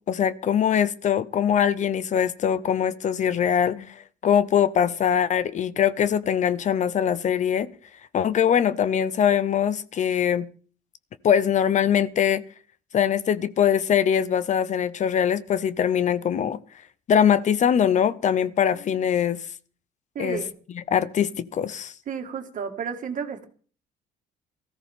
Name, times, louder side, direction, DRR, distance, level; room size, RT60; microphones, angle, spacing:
voice 1, 0.1-7.7 8.1-10.5 11.2-12.4 12.9-16.6 17.1-19.4 20.2-20.4 20.7-21.9, left 8 dB, 45° left, 0.7 m, -22 dB
voice 2, 20.2-20.5 22.1-23.5, right 6 dB, 50° right, 2.0 m, -32 dB
19.0 x 14.0 x 3.7 m
cardioid pair, 110°, 17 cm